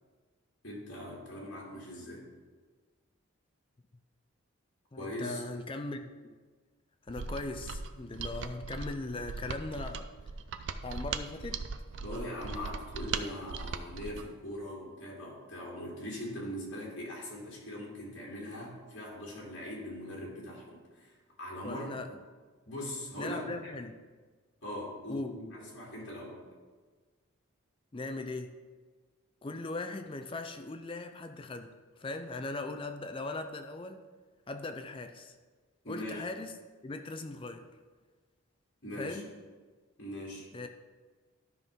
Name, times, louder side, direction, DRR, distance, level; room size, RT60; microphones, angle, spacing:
voice 1, 0.6-2.2 5.0-5.4 12.0-21.9 22.7-23.5 24.6-26.4 35.8-36.2 38.8-39.2 40.0-40.5, left 1 dB, 55° left, -5 dB, 2.7 m, -41 dB
voice 2, 4.9-6.1 7.1-10.1 10.8-11.6 21.6-22.1 23.2-23.9 25.1-25.5 27.9-28.6 29.4-34.1 34.5-35.4 35.9-36.5 36.8-37.7 39.0-39.3 40.5-40.7, left 2 dB, 25° left, 7 dB, 0.4 m, -39 dB
Mechanisms, 7.1-14.3, right 5 dB, 55° right, 0.4 m, -39 dB
12.5 x 5.4 x 3.6 m, 1.4 s
head